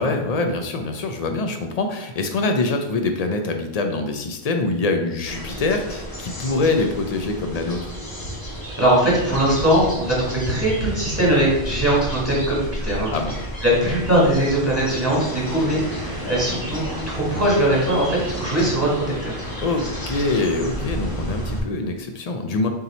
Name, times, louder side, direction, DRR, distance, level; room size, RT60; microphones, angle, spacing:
voice 1, 0.0-7.9 13.1-13.3 19.6-22.7, left 3 dB, 55° left, 5 dB, 0.4 m, -24 dB
sound 1, 5.2-21.6, equal, 20° left, 0.9 m, -32 dB
voice 2, 8.8-13.1 13.6-19.4, right 1 dB, 15° right, -5 dB, 1.4 m, -20 dB
3.9 x 2.8 x 4.1 m, 0.89 s
omnidirectional pair, 1.1 m